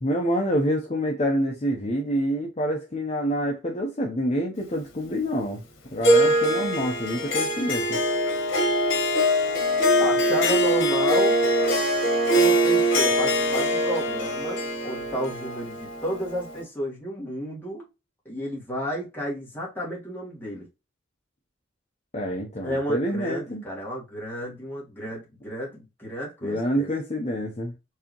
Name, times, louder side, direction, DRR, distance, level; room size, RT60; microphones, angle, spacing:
voice 1, 0.0-5.6 5.9-8.0 22.1-23.6 26.4-27.7, equal, 35° left, 0.7 m, -27 dB
Harp, 6.0-16.6, equal, 90° left, 1.1 m, -23 dB
voice 2, 10.0-11.3 12.3-17.8 18.2-20.7 22.6-26.9, equal, 10° left, 1.7 m, -32 dB
4.7 x 2.8 x 3.0 m
head